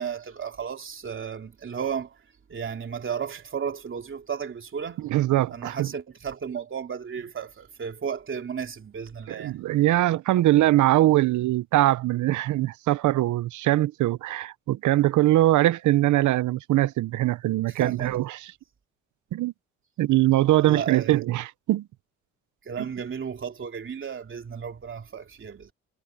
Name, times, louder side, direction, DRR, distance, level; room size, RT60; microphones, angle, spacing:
voice 1, 0.0-2.2 2.5-5.0 5.5-9.6 17.7-18.2 20.6-21.2 22.6-25.7, right 7 dB, 40° right, 3.1 m, -34 dB
voice 2, 5.1-5.9 9.3-18.4 19.3-19.5 20.0-21.9, right 15 dB, 75° right, 0.7 m, -22 dB
cardioid pair, 90°, 30 cm